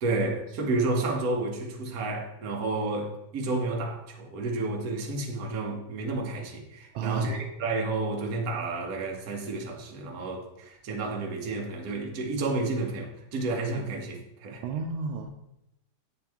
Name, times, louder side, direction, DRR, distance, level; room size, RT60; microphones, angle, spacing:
voice 1, 0.0-14.6, right 2 dB, 55° right, 1.2 m, -31 dB
voice 2, 6.9-7.4 14.6-15.3, right 5 dB, 80° right, 1.4 m, -31 dB
7.5 x 4.5 x 3.4 m
omnidirectional pair, 2.2 m